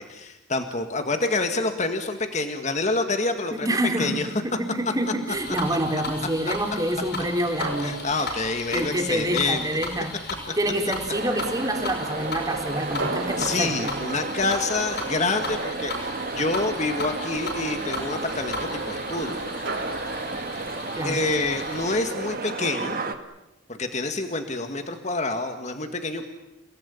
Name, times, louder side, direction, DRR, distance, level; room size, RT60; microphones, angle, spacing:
voice 1, 0.0-4.3 5.7-5.8 7.8-9.7 13.4-19.4 21.0-23.0 23.7-26.3, left 3 dB, 35° left, 6 dB, 1.9 m, -27 dB
voice 2, 3.5-8.0 8.7-10.1 10.6-13.9 21.0-21.2, right 1 dB, 20° right, 3 dB, 3.8 m, -27 dB
sound 1, 5.0-5.5 7.6-9.4 13.0-15.6 19.7-21.3, right 2 dB, 70° right, 6.0 m, -37 dB
sound 2, 5.3-22.0, left 2 dB, 55° left, 7.7 m, -36 dB
sound 3, 11.1-23.1, right 3 dB, 45° right, 1.9 m, -32 dB
30.0 x 18.5 x 9.9 m, 0.92 s
head